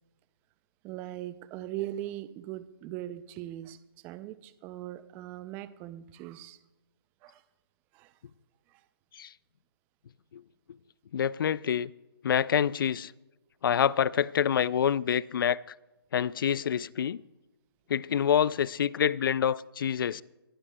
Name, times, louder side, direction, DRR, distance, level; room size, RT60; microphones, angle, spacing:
voice 1, 0.8-3.8 4.0-6.6 7.2-7.4 7.9-8.1 8.7-8.8, right 13 dB, 15° right, 0.4 m, -40 dB
voice 2, 11.1-11.9 12.2-13.1 13.6-15.6 16.1-17.2 17.9-20.2, left 8 dB, 60° left, 0.4 m, -27 dB
28.0 x 12.0 x 2.2 m
hypercardioid pair, 150°, 13 cm